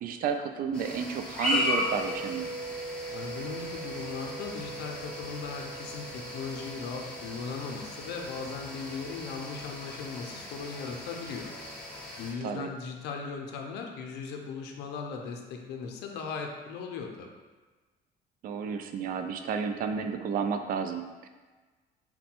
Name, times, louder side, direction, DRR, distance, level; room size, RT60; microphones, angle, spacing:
voice 1, 0.0-2.5 12.4-12.7 18.4-21.3, right 6 dB, 60° right, 7 dB, 0.4 m, -32 dB
sound 1, 0.7-12.3, left 1 dB, 5° left, 1.0 m, -37 dB
sound 2, 1.5-11.6, right 2 dB, 30° left, 0.6 m, -43 dB
voice 2, 3.1-11.5 12.2-17.3, left 5 dB, 80° left, 2 dB, 0.5 m, -38 dB
3.9 x 2.2 x 4.4 m, 1.3 s
cardioid pair, 110°, 17 cm